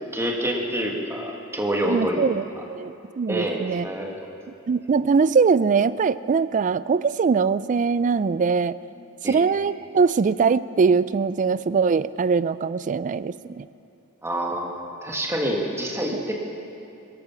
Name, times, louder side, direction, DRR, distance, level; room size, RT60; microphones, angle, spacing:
voice 1, 0.1-2.2 3.3-4.1 9.2-9.4 14.2-16.3, right 1 dB, 10° right, 0 dB, 1.8 m, -27 dB
voice 2, 1.9-2.4 2.7-3.9 4.7-8.8 9.2-13.7 16.1-16.2, right 5 dB, 35° right, 17 dB, 0.3 m, -22 dB
18.5 x 13.0 x 6.0 m, 2.7 s
head